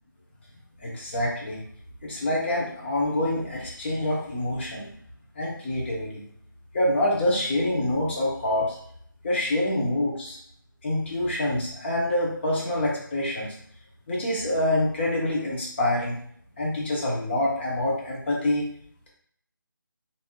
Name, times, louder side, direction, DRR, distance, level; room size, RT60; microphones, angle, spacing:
voice 1, 0.8-1.6 2.0-4.9 5.4-6.2 6.7-8.8 9.2-10.4 10.8-13.5 14.1-16.2 16.6-18.6, left 1 dB, 30° left, -4 dB, 0.8 m, -26 dB
3.4 x 2.6 x 2.2 m, 0.65 s
figure-of-eight pair, 165°, 11 cm